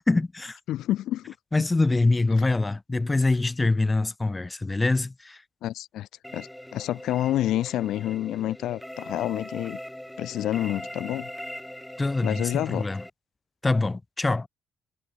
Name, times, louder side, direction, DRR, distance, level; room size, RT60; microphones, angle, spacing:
voice 1, 0.0-0.6 1.5-5.4 12.0-13.0 13.6-14.5, left 2 dB, 20° left, 0.6 m, -24 dB
voice 2, 0.7-1.3 5.6-9.8 10.2-11.3 12.2-12.9, left 13 dB, 80° left, 0.4 m, -28 dB
sound 1, 6.2-13.1, equal, 5° left, 1.0 m, -40 dB
cardioid pair, 90°, 0 cm